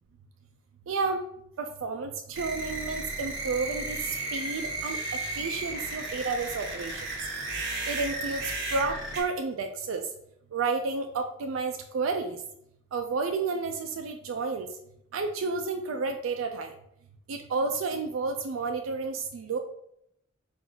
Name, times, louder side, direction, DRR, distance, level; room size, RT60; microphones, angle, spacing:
voice 1, 0.9-1.2 1.6-4.0 4.3-7.1 7.9-8.4 8.7-10.0 10.5-12.4 12.9-14.7 15.1-16.7 17.3-19.6, right 4 dB, 90° right, 5 dB, 0.4 m, -31 dB
sound 1, 2.3-9.2, right 2 dB, 65° right, 1.3 m, -34 dB
4.5 x 2.5 x 3.9 m, 0.76 s
head